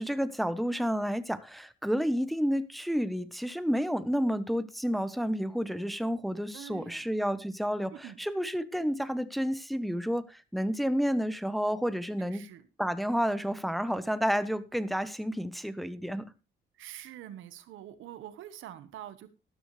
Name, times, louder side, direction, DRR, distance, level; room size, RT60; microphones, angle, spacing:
voice 1, 0.0-12.4 12.8-16.3, equal, ahead, 1.0 m, -30 dB
voice 2, 6.5-7.1 7.9-8.2 12.2-12.6 16.8-19.3, right 11 dB, 85° right, 1.2 m, -45 dB
13.0 x 12.0 x 3.2 m
cardioid pair, 90°, 20 cm